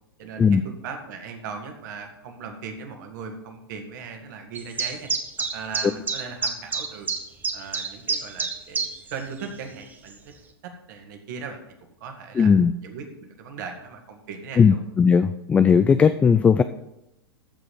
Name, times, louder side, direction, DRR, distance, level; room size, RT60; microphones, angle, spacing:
voice 1, 0.2-5.1 5.5-7.1 7.5-10.3 10.6-11.6 12.0-12.5 12.8-13.1 13.4-14.8, right 5 dB, 50° right, 4 dB, 2.1 m, -38 dB
sound 1, 4.5-9.1 9.4-9.5 10.1-10.2, right 4 dB, 15° right, 1.1 m, -27 dB
voice 2, 12.4-12.7 14.6-16.6, left 6 dB, 10° left, 12 dB, 0.3 m, -17 dB
14.0 x 4.9 x 7.8 m, 0.88 s
figure-of-eight pair, 100°, 13 cm